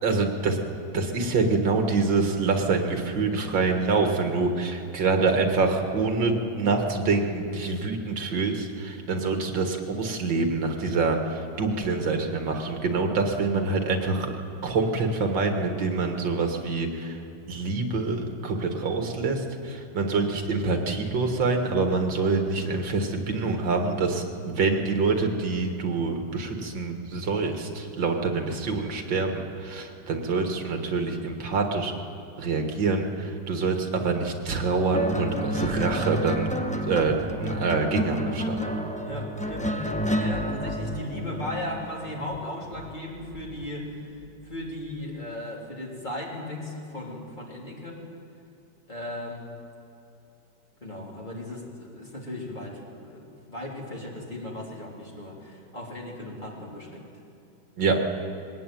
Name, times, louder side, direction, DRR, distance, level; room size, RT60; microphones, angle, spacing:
voice 1, 0.0-0.6 0.9-14.3 14.6-17.2 17.5-31.9 32.4-36.6 36.8-38.6 57.8-58.0, right 4 dB, 80° right, 4 dB, 2.4 m, -26 dB
sound 1, 34.9-43.6 44.6-44.9, equal, 5° left, 0.7 m, -30 dB
voice 2, 39.0-44.0 44.4-48.0 48.9-49.4 50.8-57.1, left 1 dB, 25° left, -3 dB, 3.5 m, -36 dB
21.5 x 17.5 x 9.2 m, 2.7 s
omnidirectional pair, 2.0 m